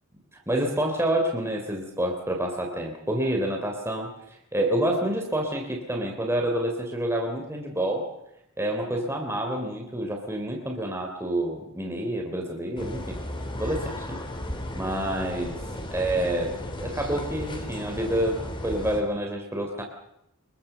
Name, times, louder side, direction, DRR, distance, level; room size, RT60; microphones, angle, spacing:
voice 1, 0.5-8.0 8.6-13.2 13.5-14.2 14.7-15.6 15.9-19.8, right 1 dB, 10° right, 1 dB, 3.6 m, -28 dB
sound 1, 12.8-19.0, left 1 dB, 25° left, 3.8 m, -35 dB
25.5 x 23.0 x 7.0 m, 0.80 s
head